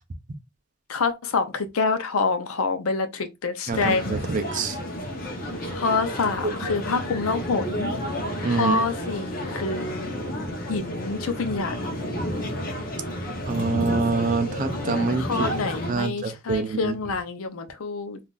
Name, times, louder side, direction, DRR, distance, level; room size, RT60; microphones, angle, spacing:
voice 1, 0.9-4.2 5.7-7.9 8.5-10.1 10.7-11.9 15.2-18.2, left 4 dB, 85° left, 0.6 m, -27 dB
sound 1, 3.7-15.9, equal, 40° left, 0.8 m, -31 dB
voice 2, 3.7-4.8 8.4-8.8 13.5-15.5 15.9-16.9, right 4 dB, 35° right, 0.4 m, -26 dB
3.7 x 2.5 x 2.4 m
head